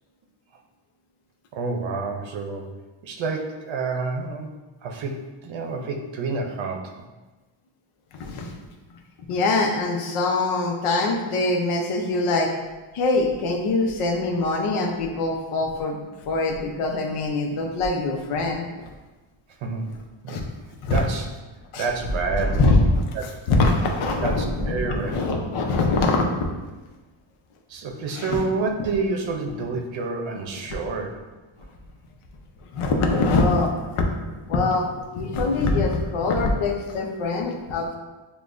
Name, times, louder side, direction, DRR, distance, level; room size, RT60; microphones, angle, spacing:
voice 1, 1.5-2.7 3.0-4.5 4.8-7.0 19.6-19.8 20.2-20.4 20.9-21.3 21.8-22.8 23.1-23.3 24.2-25.3 27.7-31.2, right 4 dB, 70° right, 2 dB, 0.7 m, -28 dB
voice 2, 8.1-8.5 9.3-12.5 12.9-16.0 16.3-18.6 20.3-20.4 20.8-21.0 21.7-21.8 22.4-23.0 23.5-26.3 28.1-28.5 32.7-34.1 34.5-34.9 35.1-38.0, left 3 dB, 90° left, 1 dB, 0.8 m, -23 dB
6.9 x 2.4 x 2.5 m, 1.2 s
cardioid pair, 130°, 49 cm